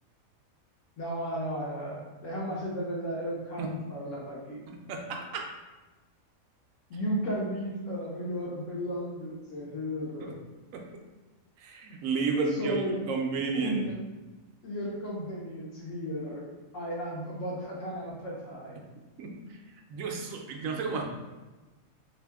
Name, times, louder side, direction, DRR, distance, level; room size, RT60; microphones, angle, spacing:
voice 1, 1.0-4.6 6.9-10.3 12.5-13.0 13.5-13.9 14.6-16.4 16.7-18.8, equal, 65° left, -5 dB, 1.0 m, -34 dB
voice 2, 4.9-5.5 10.2-10.3 10.7-10.8 11.6-13.8 19.2-19.3 19.9-21.0, right 4 dB, 70° right, 1 dB, 0.9 m, -31 dB
2.8 x 2.7 x 3.4 m, 1.2 s
omnidirectional pair, 1.5 m